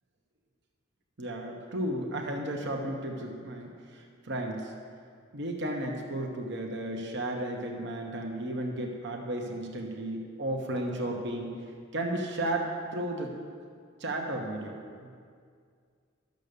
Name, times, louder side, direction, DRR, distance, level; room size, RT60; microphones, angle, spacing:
voice 1, 1.2-4.7 5.3-11.5 11.9-13.3 14.0-15.1, right 1 dB, 60° right, 1 dB, 1.1 m, -34 dB
12.0 x 6.6 x 6.7 m, 2.2 s
head